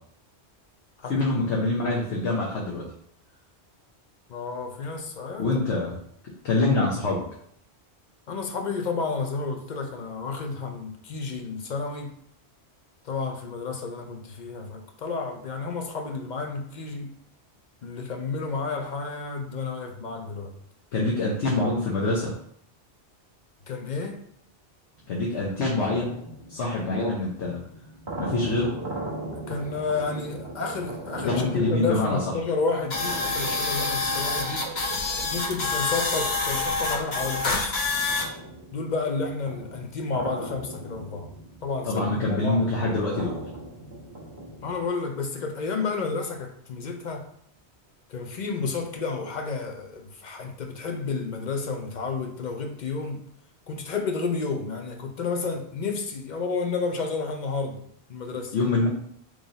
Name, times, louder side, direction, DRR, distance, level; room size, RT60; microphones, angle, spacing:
voice 1, 1.1-2.8 5.4-5.9 6.4-7.2 20.9-22.3 25.1-26.1 26.5-27.6 28.2-28.7 31.2-32.2 41.8-43.4 58.5-58.9, left 2 dB, 90° left, 1.1 m, -25 dB
voice 2, 4.3-5.6 8.3-12.2 13.0-17.2 17.8-20.5 23.7-24.2 29.3-34.7 35.3-37.8 38.7-41.3 41.6-42.6 44.6-47.3 48.1-53.3 53.7-57.8 58.1-58.5, left 4 dB, 50° left, 0.6 m, -31 dB
sound 1, 25.0-36.7 37.2-44.9, right 1 dB, 45° right, 1.7 m, -40 dB
Bark, 28.6-30.2 30.6-32.4 33.0-34.0 34.3-35.3 36.0-37.7, right 4 dB, 70° right, 1.0 m, -43 dB
sound 2, 32.9-38.2, left 3 dB, 65° left, 1.1 m, -27 dB
3.8 x 3.2 x 4.0 m
omnidirectional pair, 1.1 m